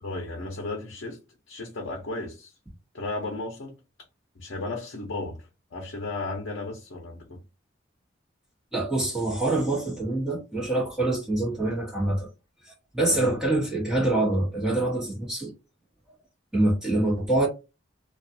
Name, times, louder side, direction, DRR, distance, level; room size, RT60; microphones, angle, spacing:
voice 1, 0.0-1.2 1.5-2.5 2.9-3.8 4.4-5.4 5.7-7.4 13.1-13.3, left 2 dB, 65° left, 0.6 m, -34 dB
voice 2, 8.7-12.3 12.6-15.5 16.5-17.5, right 2 dB, 5° right, 1.2 m, -25 dB
2.4 x 2.3 x 2.7 m
head